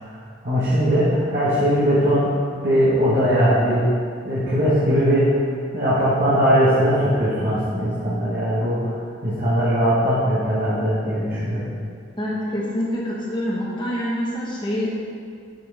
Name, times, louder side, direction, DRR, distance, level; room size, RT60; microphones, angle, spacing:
voice 1, 0.4-2.4 2.6-3.8 4.2-5.4 5.7-8.9 9.2-11.7, equal, 45° right, -10 dB, 1.5 m, -20 dB
voice 2, 12.2-15.0, equal, 25° left, -5 dB, 1.3 m, -26 dB
7.9 x 6.1 x 3.5 m, 2.3 s
head